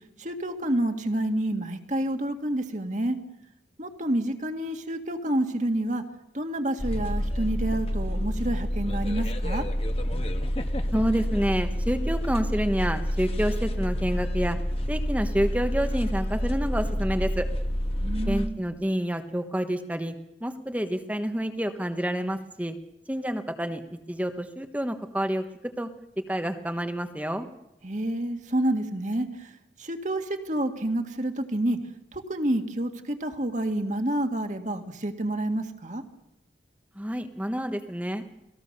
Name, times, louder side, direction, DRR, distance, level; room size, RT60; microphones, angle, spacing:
voice 1, 0.2-3.2 3.8-6.0 6.3-9.6 18.0-18.6 27.8-29.3 29.8-31.8 32.1-36.0, right 1 dB, 40° right, 5 dB, 1.9 m, -28 dB
sound 1, 6.8-18.5, equal, 30° left, 1.5 m, -28 dB
voice 2, 10.9-14.6 14.9-17.5 18.3-20.1 20.4-22.7 23.1-25.9 26.3-27.5 36.9-38.2, equal, 10° right, 7 dB, 1.1 m, -28 dB
30.0 x 19.5 x 6.7 m, 0.92 s
head